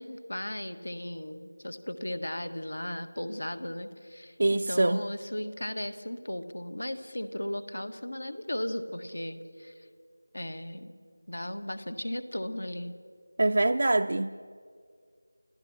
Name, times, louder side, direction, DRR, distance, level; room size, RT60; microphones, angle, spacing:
voice 1, 0.0-9.9 10.3-10.9 11.3-12.9, left 1 dB, 85° left, 10 dB, 1.6 m, -36 dB
voice 2, 4.4-5.1 13.4-14.3, right 2 dB, 55° right, 6 dB, 0.5 m, -24 dB
29.5 x 16.0 x 6.0 m, 2.2 s
figure-of-eight pair, 170°, 0 cm